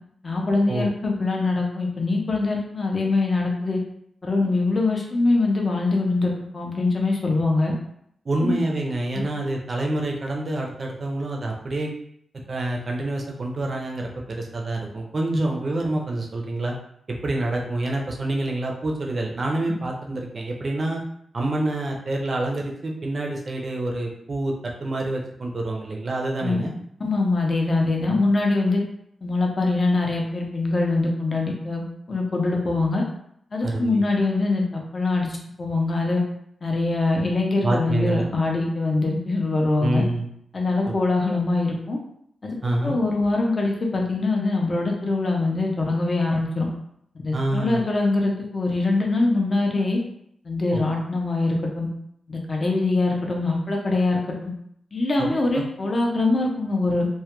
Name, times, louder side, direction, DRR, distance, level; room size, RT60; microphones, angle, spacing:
voice 1, 0.2-3.8 4.2-7.7 8.4-8.6 26.4-26.6 27.0-28.8 29.2-33.0 33.5-36.2 36.6-40.0 40.5-42.0 42.4-42.6 42.8-46.7 47.2-50.0 50.4-51.9 52.3-54.5 54.9-57.1, left 2 dB, 35° left, 0 dB, 0.5 m, -23 dB
voice 2, 8.3-11.9 12.5-16.8 17.2-21.0 21.3-24.5 24.8-26.7 33.6-34.0 37.6-38.3 39.8-40.3 42.6-43.0 47.3-47.8 50.7-50.8 55.2-55.3 55.5-55.6, right 2 dB, 40° right, 0 dB, 0.5 m, -27 dB
2.2 x 2.1 x 2.9 m, 0.70 s
wide cardioid pair, 140°, 0 cm